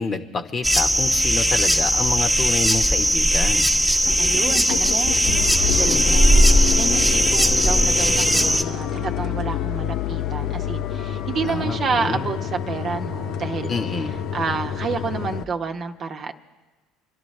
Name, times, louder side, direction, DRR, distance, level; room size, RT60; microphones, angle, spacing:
voice 1, 0.0-3.7 5.9-6.2 11.5-12.3 13.7-14.2, left 4 dB, 35° left, 7 dB, 1.1 m, -28 dB
sound 1, 0.6-8.6, equal, ahead, 1.1 m, -18 dB
sound 2, 1.8-1.9 2.4-2.8 3.1-3.2 3.5-3.6 3.9-15.4, left 9 dB, 55° left, 0.5 m, -28 dB
voice 2, 4.2-13.7 14.3-16.3, right 5 dB, 45° right, 4 dB, 1.0 m, -29 dB
27.5 x 12.0 x 3.3 m, 1.3 s
hypercardioid pair, 70°, 0 cm